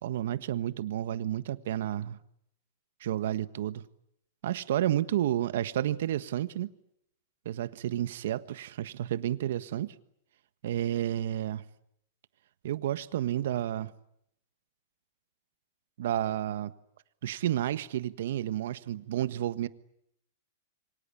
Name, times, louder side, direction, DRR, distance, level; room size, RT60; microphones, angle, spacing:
voice 1, 0.0-2.2 3.0-3.8 4.4-6.7 7.4-9.9 10.6-11.6 12.6-13.9 16.0-16.7 17.2-19.7, right 12 dB, 65° right, 1.4 m, -31 dB
27.5 x 24.5 x 8.6 m
supercardioid pair, 165°, 0 cm